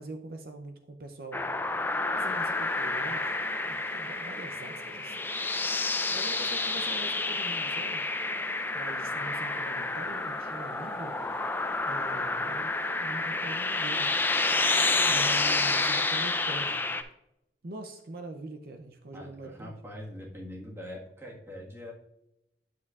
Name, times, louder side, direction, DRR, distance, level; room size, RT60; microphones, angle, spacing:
voice 1, 0.0-1.6 1.9-3.3 3.6-5.3 6.1-8.0 8.7-11.2 11.9-14.1 15.1-16.8 17.6-19.7, right 2 dB, 55° right, 5 dB, 0.6 m, -43 dB
sound 1, 1.3-17.0, left 3 dB, 10° left, 0.4 m, -29 dB
sound 2, 2.2-14.0, right 1 dB, 35° right, 1.1 m, -48 dB
voice 2, 19.1-21.9, left 1 dB, 15° right, -2 dB, 1.5 m, -43 dB
9.5 x 6.6 x 2.4 m, 0.84 s
head